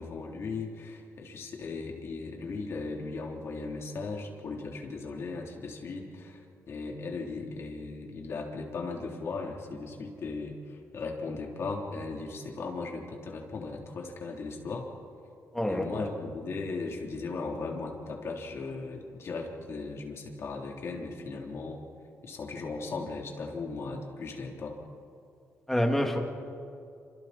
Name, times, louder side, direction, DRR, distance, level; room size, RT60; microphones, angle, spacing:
voice 1, 0.0-14.9 15.7-21.8 22.2-24.8, left 3 dB, 55° left, 0 dB, 3.5 m, -37 dB
voice 2, 15.5-16.1 25.7-26.2, equal, 5° left, 2 dB, 2.6 m, -27 dB
28.5 x 27.5 x 4.3 m, 2.5 s
cardioid pair, 120°, 5 cm